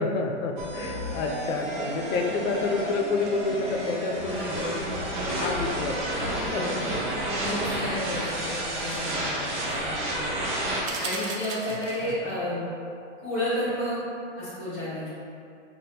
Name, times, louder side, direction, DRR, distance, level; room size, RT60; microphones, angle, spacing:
voice 1, 0.0-5.1 5.4-6.8 11.7-12.5, left 3 dB, 90° left, 3 dB, 0.5 m, -30 dB
sound 1, 0.6-10.8, right 1 dB, 40° right, 0.6 m, -30 dB
voice 2, 4.3-4.6 6.4-10.3 11.0-12.6 13.2-14.0 14.4-15.1, left 1 dB, 10° left, -16 dB, 0.4 m, -32 dB
sound 2, 10.8-12.3, right 4 dB, 85° right, 0.6 m, -36 dB
2.8 x 2.1 x 3.4 m, 2.5 s
hypercardioid pair, 170°, 37 cm